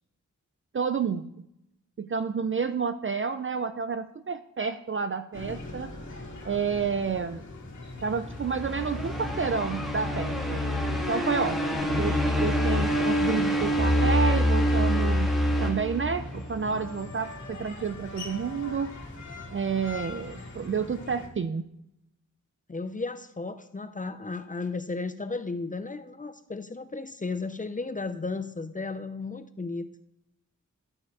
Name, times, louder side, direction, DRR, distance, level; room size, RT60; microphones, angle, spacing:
voice 1, 0.7-1.3 2.0-5.9 6.4-7.4 8.0-10.6 11.1-15.3 15.6-18.9 19.5-21.7, right 5 dB, 40° right, 10 dB, 0.4 m, -30 dB
sound 1, 5.3-21.3, left 2 dB, 60° left, 2.3 m, -42 dB
sound 2, 8.3-16.6, equal, ahead, 1.9 m, -26 dB
voice 2, 22.7-29.9, left 3 dB, 25° left, 10 dB, 0.5 m, -34 dB
11.5 x 4.4 x 4.8 m, 0.81 s
wide cardioid pair, 115°, 32 cm